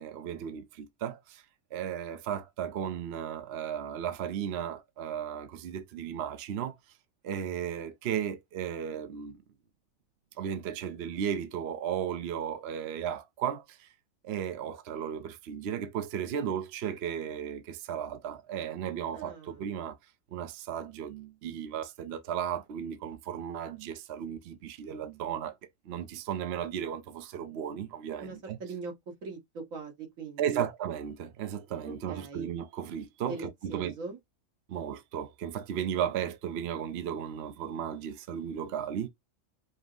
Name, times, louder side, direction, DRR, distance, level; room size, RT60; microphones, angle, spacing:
voice 1, 0.0-1.4 1.7-6.8 7.2-9.4 10.4-13.9 14.2-20.0 20.3-25.6 25.9-28.6 30.4-33.9 34.7-39.1, right 9 dB, 60° right, 0.8 m, -35 dB
voice 2, 19.1-19.7 28.2-30.7 31.8-32.5 33.2-34.2, right 4 dB, 80° right, 1.8 m, -41 dB
5.2 x 2.0 x 3.8 m
omnidirectional pair, 1.4 m